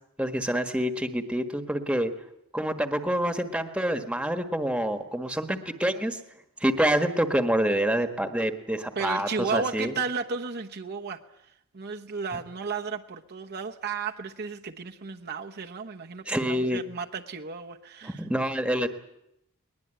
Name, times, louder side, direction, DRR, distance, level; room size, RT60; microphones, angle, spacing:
voice 1, 0.2-2.1 2.5-6.2 6.6-9.9 16.3-16.8 18.0-18.9, right 1 dB, 5° right, 7 dB, 1.5 m, -27 dB
voice 2, 8.9-18.2, right 5 dB, 50° right, 3 dB, 1.1 m, -34 dB
21.5 x 20.5 x 9.1 m, 0.80 s
head